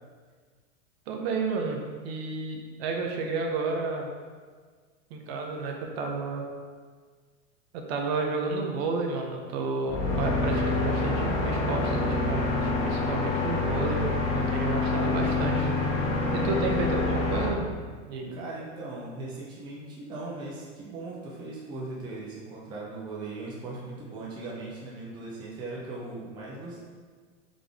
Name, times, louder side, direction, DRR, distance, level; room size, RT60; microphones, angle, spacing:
voice 1, 1.1-4.1 5.1-6.4 7.7-14.0 14.3-15.7 16.3-17.6 18.1-18.4, right 3 dB, 50° right, 2 dB, 0.8 m, -31 dB
sound 1, 9.9-17.5, left 3 dB, 35° left, 0.8 m, -27 dB
voice 2, 15.0-15.3 18.3-26.8, right 2 dB, 10° right, -5 dB, 0.5 m, -39 dB
3.8 x 3.5 x 3.5 m, 1.5 s
supercardioid pair, 140°, 39 cm